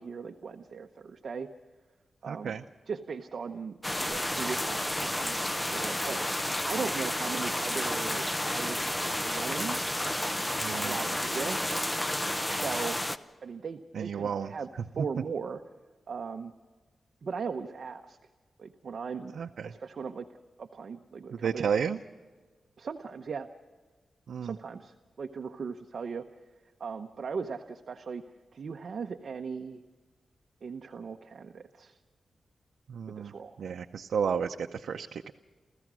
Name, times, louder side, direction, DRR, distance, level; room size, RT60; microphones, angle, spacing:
voice 1, 0.0-1.5 2.2-2.5 2.9-11.6 12.5-13.0 13.4-14.7 14.9-15.6 16.1-16.5 17.2-18.2 18.6-19.4 19.6-20.3 20.6-21.7 22.8-23.5 24.4-26.2 26.8-28.2 28.5-29.8 30.6-32.0 33.2-33.6, right 5 dB, 50° right, 5 dB, 0.8 m, -38 dB
voice 2, 2.3-2.6 10.6-11.0 13.9-14.5 19.3-19.7 21.3-22.0 24.3-24.5 32.9-33.3 33.6-35.3, right 7 dB, 80° right, 4 dB, 0.6 m, -32 dB
sound 1, 3.8-13.2, left 1 dB, 10° left, 0.6 m, -31 dB
29.0 x 15.0 x 6.2 m, 1.4 s
wide cardioid pair, 175°, 0 cm